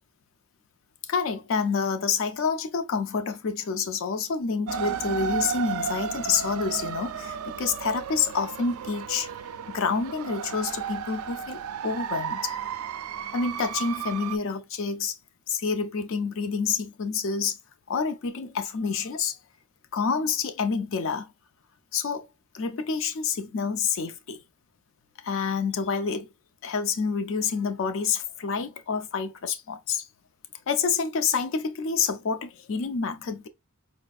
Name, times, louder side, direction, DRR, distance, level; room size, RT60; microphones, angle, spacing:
voice 1, 1.1-9.3 9.7-12.6 13.3-15.2 15.5-17.6 17.9-19.4 19.9-21.3 21.9-22.3 22.5-24.4 25.2-26.3 26.6-30.1 30.7-33.5, left 5 dB, 60° left, 0.4 m, -28 dB
sound 1, 4.7-14.4, right 7 dB, 85° right, 0.4 m, -33 dB
4.3 x 2.4 x 2.3 m
head